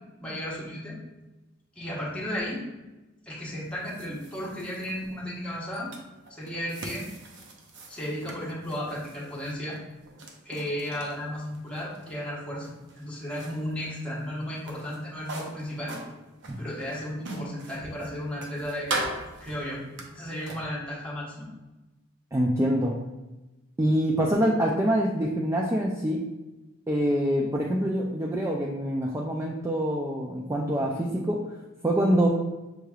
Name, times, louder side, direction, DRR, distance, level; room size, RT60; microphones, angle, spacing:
voice 1, 0.2-1.0 1.7-2.6 3.3-5.9 6.3-7.1 7.9-9.8 10.4-16.0 16.6-19.1 19.4-19.8 20.1-21.5, equal, 5° left, -7 dB, 1.2 m, -34 dB
sound 1, 3.4-20.6, right 2 dB, 60° right, 0.6 m, -41 dB
voice 2, 22.3-23.0 23.8-26.2 26.9-31.4 31.8-32.3, equal, 15° right, -2 dB, 0.3 m, -25 dB
6.4 x 3.1 x 2.3 m, 1.1 s
head